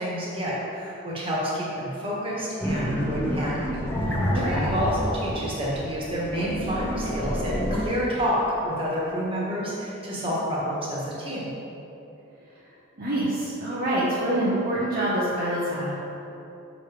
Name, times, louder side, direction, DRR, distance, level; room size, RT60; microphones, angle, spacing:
voice 1, 0.0-3.6 4.0-11.5, equal, 25° right, -6 dB, 1.6 m, -29 dB
sound 1, 2.6-7.8, equal, 10° left, 0.9 m, -28 dB
voice 2, 4.3-4.7 13.0-15.9, right 1 dB, 45° right, -8 dB, 1.0 m, -26 dB
6.3 x 5.2 x 5.0 m, 2.9 s
head